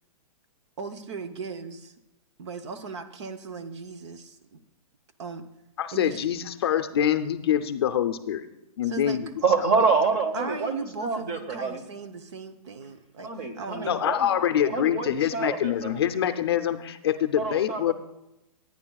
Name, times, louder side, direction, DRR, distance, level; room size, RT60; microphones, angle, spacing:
voice 1, 0.8-1.9 2.4-4.6 5.2-5.5 5.9-6.5 8.8-9.2 10.3-14.0, right 4 dB, 50° right, 10 dB, 0.8 m, -38 dB
voice 2, 5.8-8.5 8.8-9.3 13.9-17.9, left 10 dB, 45° left, 9 dB, 0.5 m, -25 dB
voice 3, 9.4-11.8 13.2-14.3 14.6-16.1 17.4-17.9, right 4 dB, 20° right, 8 dB, 0.9 m, -27 dB
21.0 x 9.5 x 2.3 m, 0.90 s
hypercardioid pair, 175°, 19 cm